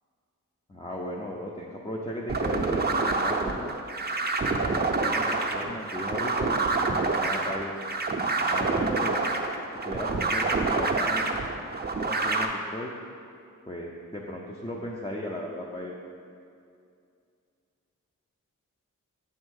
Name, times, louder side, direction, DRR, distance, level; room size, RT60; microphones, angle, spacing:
voice 1, 0.7-3.8 4.5-6.5 6.9-7.7 8.5-9.1 9.8-11.3 12.1-12.9 13.7-15.9, left 1 dB, 15° left, -3 dB, 0.6 m, -36 dB
sound 1, 2.3-12.5, right 3 dB, 30° right, 0.6 m, -27 dB
8.2 x 3.7 x 6.3 m, 2.4 s
wide cardioid pair, 75°, 32 cm